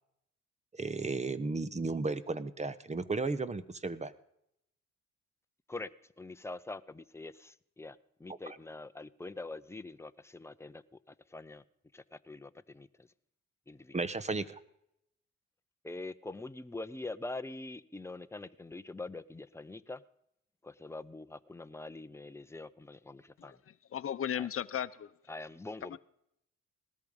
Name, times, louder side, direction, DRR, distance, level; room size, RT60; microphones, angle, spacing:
voice 1, 0.7-4.1 8.5-8.6 13.9-14.6, right 3 dB, 20° right, 1.2 m, -34 dB
voice 2, 6.2-10.8 11.3-11.6 11.9-13.1 13.7-13.9 15.8-20.0 20.6-23.6 24.3-24.5 25.3-26.0, left 2 dB, 10° left, 0.8 m, -44 dB
voice 3, 23.9-25.1 25.9-26.0, left 9 dB, 45° left, 0.9 m, -35 dB
19.0 x 13.0 x 5.4 m
cardioid pair, 90°, 30 cm